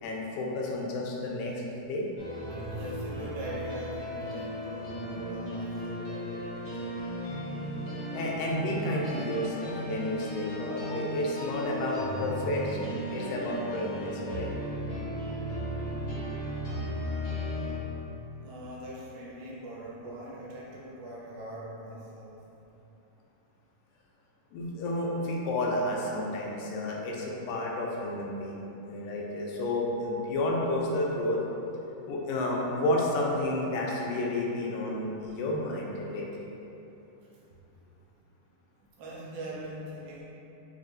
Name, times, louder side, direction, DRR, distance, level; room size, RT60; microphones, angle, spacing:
voice 1, 0.0-1.5 1.9-2.1 8.1-14.5 24.5-31.4 32.1-36.3, left 1 dB, 85° left, -2 dB, 2.2 m, -31 dB
sound 1, 2.2-17.7, equal, 60° left, 1.3 m, -35 dB
voice 2, 2.6-7.0 18.4-22.4 37.2-37.4 39.0-40.2, right 1 dB, 85° right, -6 dB, 2.4 m, -42 dB
5.5 x 2.6 x 2.5 m, 3.0 s
omnidirectional pair, 4.1 m